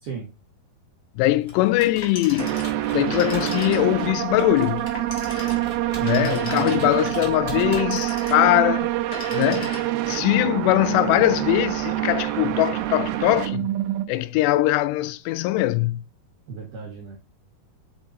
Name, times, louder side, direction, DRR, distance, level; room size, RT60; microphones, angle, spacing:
voice 1, 1.2-2.6 2.9-4.9 6.0-8.9 9.3-9.7 10.1-13.7 14.1-16.0, left 16 dB, 85° left, 2.7 m, -21 dB
Computer keyboard, 1.4-8.3, equal, 10° left, 2.1 m, -42 dB
Telephone, 1.9-4.1 4.9-7.1 7.8-8.6 9.0-10.2, left 2 dB, 40° left, 1.3 m, -37 dB
sound 1, 2.4-14.1, right 14 dB, 80° right, 2.3 m, -26 dB
voice 2, 6.0-6.9 16.5-17.2, right 6 dB, 60° right, 2.7 m, -35 dB
6.3 x 5.2 x 4.1 m
omnidirectional pair, 4.8 m